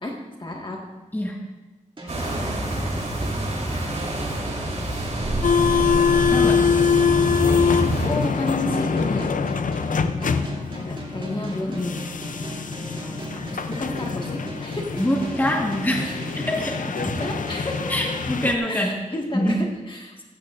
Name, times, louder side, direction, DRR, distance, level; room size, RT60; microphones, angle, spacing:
voice 1, 0.0-0.8 6.4-6.5 7.6-9.4 10.1-10.4 10.8-11.9 13.0-15.0 16.0-16.2 17.0-17.9 18.7-20.2, left 2 dB, 35° left, -1 dB, 1.8 m, -31 dB
sound 1, 2.0-18.6, right 2 dB, 40° right, 3.0 m, -38 dB
sound 2, 2.1-8.1, right 1 dB, 60° right, 3.6 m, -27 dB
sound 3, 5.4-18.5, left 6 dB, 75° left, 0.6 m, -24 dB
voice 2, 15.0-17.0 17.9-19.0 19.3-19.6, equal, 15° left, -1 dB, 1.8 m, -24 dB
15.5 x 14.0 x 2.6 m, 1.1 s
wide cardioid pair, 105°, 14 cm